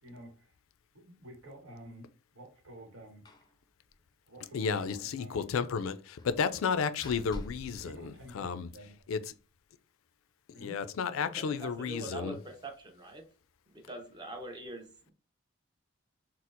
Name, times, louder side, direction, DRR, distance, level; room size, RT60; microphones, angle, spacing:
voice 1, 0.0-0.5 0.9-2.1 2.3-3.2 4.3-5.5 7.8-8.9 10.5-10.8, right 1 dB, 85° right, 1.0 m, -50 dB
Slam, 3.3-3.6 3.9-4.0 4.3-4.4 6.2-8.8, left 1 dB, 20° left, 0.4 m, -47 dB
voice 2, 4.5-8.7 9.1-9.2 10.5-12.4, left 6 dB, 85° left, 0.4 m, -32 dB
voice 3, 11.3-13.2 13.7-15.1, right 2 dB, 20° right, 0.6 m, -43 dB
4.2 x 2.0 x 2.5 m
head